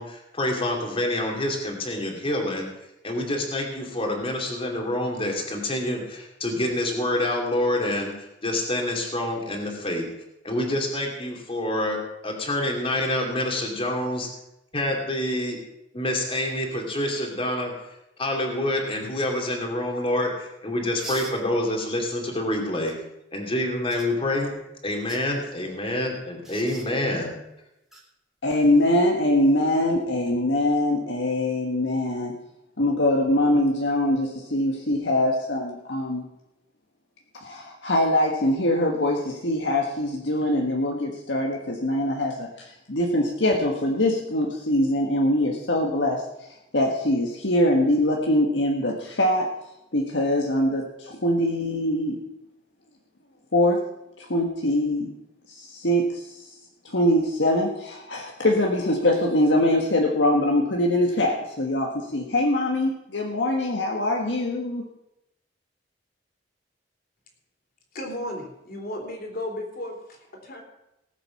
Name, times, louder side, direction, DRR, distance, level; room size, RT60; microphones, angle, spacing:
voice 1, 0.0-2.7 3.0-10.1 10.4-12.0 12.2-14.3 14.7-15.6 15.9-17.7 18.2-22.9 23.3-24.5 24.8-27.4, left 1 dB, 30° left, 1 dB, 2.6 m, -27 dB
sound 1, 21.0-21.4 22.9-23.0 23.9-24.1 24.9-25.2 26.4-26.9 27.9-28.0 30.1-30.3, right 2 dB, ahead, 2.5 m, -40 dB
voice 2, 28.4-32.4 32.8-36.3 37.3-49.5 49.9-52.2 53.5-53.8 54.2-55.1 55.5-56.6 56.8-64.8, left 1 dB, 70° left, 1 dB, 1.5 m, -23 dB
voice 3, 67.9-70.6, left 1 dB, 55° left, 2 dB, 3.5 m, -34 dB
18.5 x 7.7 x 5.8 m, 0.88 s
head